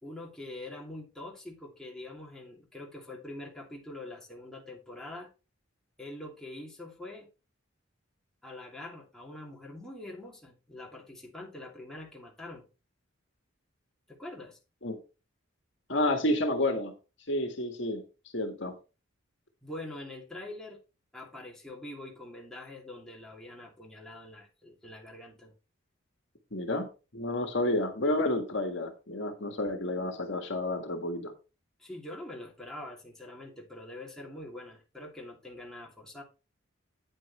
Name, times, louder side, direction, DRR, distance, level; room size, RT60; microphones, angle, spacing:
voice 1, 0.0-5.3 6.0-7.3 8.4-12.7 14.1-14.6 19.6-20.8 21.1-25.5 31.8-36.2, left 1 dB, 5° left, 2.9 m, -44 dB
voice 2, 15.9-16.9 17.3-18.0 18.3-18.7 26.5-26.9 27.1-31.3, left 1 dB, 60° left, 1.7 m, -30 dB
9.4 x 9.0 x 3.3 m
head